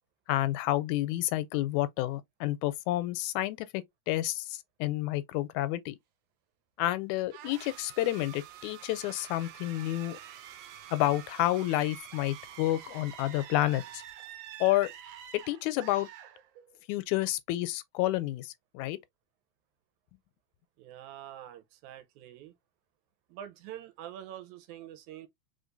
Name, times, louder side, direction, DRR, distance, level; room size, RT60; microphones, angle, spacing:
voice 1, 0.3-6.0 6.8-10.2 10.9-14.0 14.6-14.9 15.3-16.1 16.9-19.0, left 15 dB, 90° left, 2.0 m, -30 dB
sound 1, 7.3-16.9, right 10 dB, 70° right, 1.7 m, -47 dB
voice 2, 20.8-22.5 23.3-25.3, right 11 dB, 90° right, 2.2 m, -45 dB
4.3 x 3.4 x 2.6 m
omnidirectional pair, 3.3 m